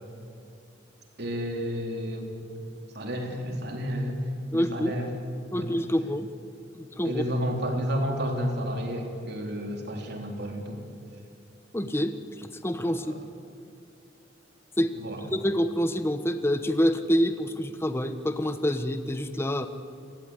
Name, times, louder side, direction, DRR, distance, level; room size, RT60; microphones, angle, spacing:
voice 1, 1.2-2.3 2.9-5.1 5.5-5.7 7.0-10.8 12.9-13.2 15.0-15.2, equal, 55° right, 2 dB, 4.0 m, -31 dB
voice 2, 4.5-4.9 5.5-6.3 6.7-7.2 11.7-13.0 14.8-15.0 15.3-19.7, equal, 15° left, 9 dB, 1.0 m, -27 dB
28.5 x 18.0 x 9.9 m, 2.5 s
head